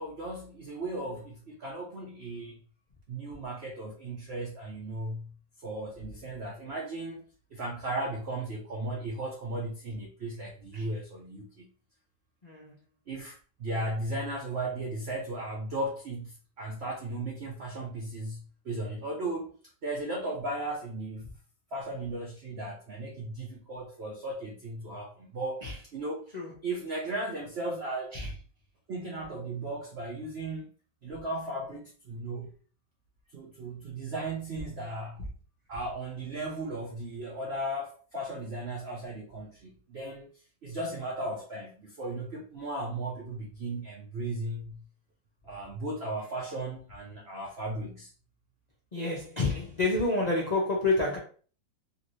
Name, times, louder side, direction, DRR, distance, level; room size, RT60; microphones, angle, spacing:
voice 1, 0.0-2.6 3.1-5.3 5.6-7.3 7.5-11.7 13.1-19.5 19.8-21.3 21.7-26.3 26.6-28.2 28.9-30.7 31.0-32.5 33.3-35.2 35.7-40.3 40.6-44.8 45.4-48.1, right 2 dB, 85° right, 0.5 m, -36 dB
voice 2, 12.4-12.8 25.6-25.8 26.3-26.6 28.1-28.3 35.2-35.3 48.9-51.2, left 2 dB, 80° left, 0.3 m, -29 dB
3.0 x 2.7 x 3.0 m
omnidirectional pair, 1.9 m